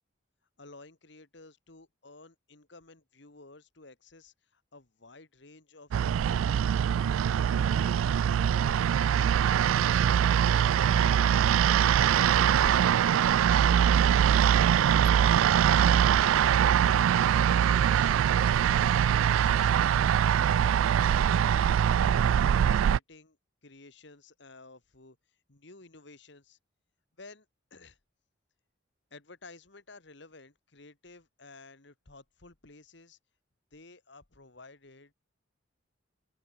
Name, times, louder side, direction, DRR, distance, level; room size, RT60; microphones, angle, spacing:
voice 1, 0.6-7.2 7.6-11.5 11.9-12.8 13.2-16.6 17.2-20.0 20.6-21.1 22.0-23.4 23.6-26.6 27.2-28.0 29.1-33.2 33.7-35.1, left 3 dB, 60° left, 1.8 m, -53 dB
sound 1, 5.9-23.0, right 9 dB, 85° right, 0.3 m, -23 dB
open air
head